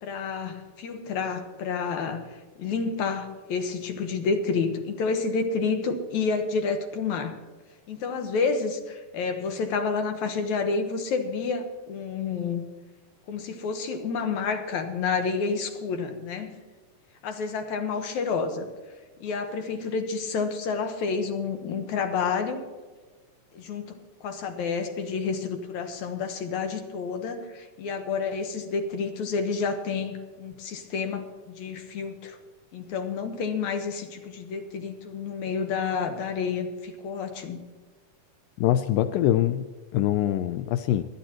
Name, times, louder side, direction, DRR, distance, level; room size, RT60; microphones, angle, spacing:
voice 1, 0.0-7.4 7.9-12.6 13.3-16.6 17.2-18.7 19.2-22.6 23.5-32.4 32.7-37.6, left 5 dB, 65° left, 6 dB, 2.3 m, -29 dB
voice 2, 38.6-41.0, left 12 dB, 85° left, 10 dB, 2.2 m, -24 dB
24.0 x 10.0 x 3.0 m, 1.3 s
omnidirectional pair, 4.0 m